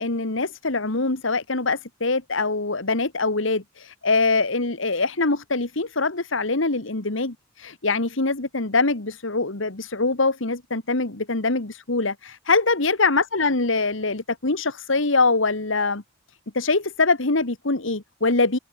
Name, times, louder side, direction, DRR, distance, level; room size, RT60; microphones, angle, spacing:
voice 1, 0.0-16.0 16.5-18.6, left 3 dB, 75° left, 1.8 m, -23 dB
open air
head